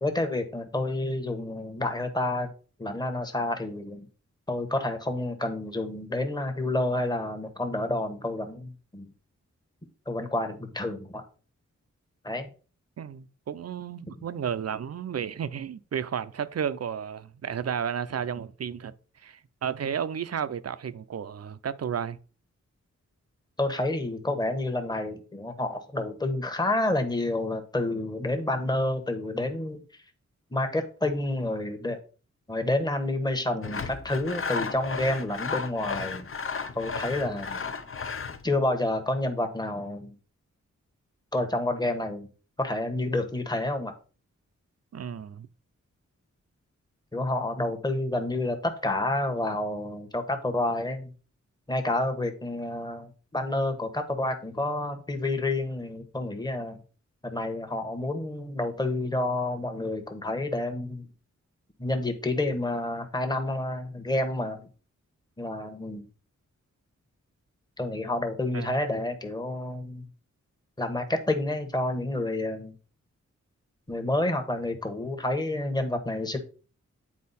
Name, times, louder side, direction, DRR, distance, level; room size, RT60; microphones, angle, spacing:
voice 1, 0.0-2.5 2.8-4.1 4.5-9.1 10.1-11.2 12.2-12.5 23.6-29.8 30.5-32.0 32.5-36.3 36.7-37.6 38.4-40.1 41.3-42.3 42.6-43.9 47.1-51.1 51.7-56.8 57.2-61.1 61.8-64.6 65.4-66.1 67.8-70.0 70.8-72.7 73.9-76.4, left 2 dB, 15° left, 1.2 m, -29 dB
voice 2, 13.0-18.9 19.2-22.2 44.9-45.5 68.5-68.8, right 8 dB, 55° right, 0.6 m, -33 dB
Sawing, 33.6-38.4, left 5 dB, 45° left, 0.7 m, -34 dB
9.5 x 4.5 x 4.1 m
wide cardioid pair, 135°, 29 cm